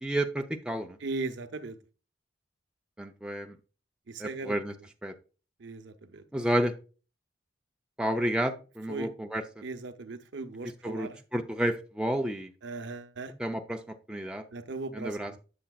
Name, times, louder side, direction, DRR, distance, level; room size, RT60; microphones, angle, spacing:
voice 1, 0.0-1.0 3.0-3.6 4.2-4.7 5.0-5.1 6.3-6.7 8.0-9.6 10.8-12.5 13.4-13.8 14.1-14.4 14.9-15.3, right 1 dB, 5° right, 0.5 m, -31 dB
voice 2, 1.0-1.8 4.1-4.6 5.6-6.2 8.9-9.1 9.6-11.2 12.6-13.3 14.5-15.4, right 3 dB, 70° right, 0.7 m, -38 dB
8.6 x 6.8 x 2.3 m
head